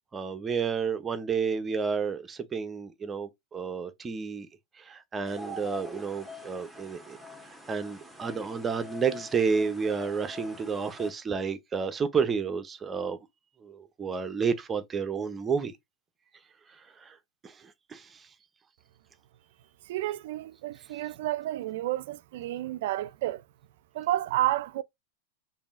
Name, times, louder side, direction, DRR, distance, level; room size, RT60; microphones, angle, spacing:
voice 1, 0.1-4.5 4.9-7.2 7.7-13.2 13.6-15.7 17.0-17.1 17.4-17.5 17.9-18.1, right 5 dB, 20° right, 0.7 m, -30 dB
sound 1, 5.3-11.1, left 1 dB, ahead, 1.2 m, -44 dB
voice 2, 19.9-23.4 23.9-24.8, right 14 dB, 65° right, 0.3 m, -30 dB
5.2 x 2.6 x 2.5 m
hypercardioid pair, 110°, 0 cm